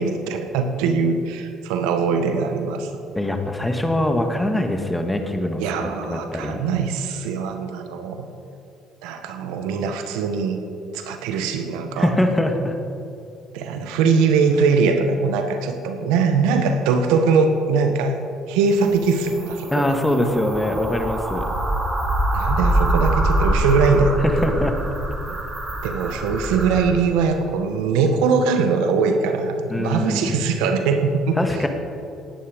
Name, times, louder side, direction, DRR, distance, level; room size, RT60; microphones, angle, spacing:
voice 1, 0.0-2.9 5.6-8.3 9.0-10.6 10.9-12.1 13.5-18.2 18.5-19.8 22.3-24.6 25.3-25.4 25.8-31.4, right 5 dB, 85° right, 7 dB, 1.3 m, -21 dB
voice 2, 3.2-6.6 12.0-12.7 19.7-21.5 24.2-24.8 29.7-30.3 31.4-31.7, left 1 dB, 10° left, 5 dB, 1.8 m, -23 dB
sound 1, 18.7-26.9, right 1 dB, 25° right, 3.9 m, -24 dB
18.0 x 10.0 x 5.2 m, 2.7 s
supercardioid pair, 80°, 0 cm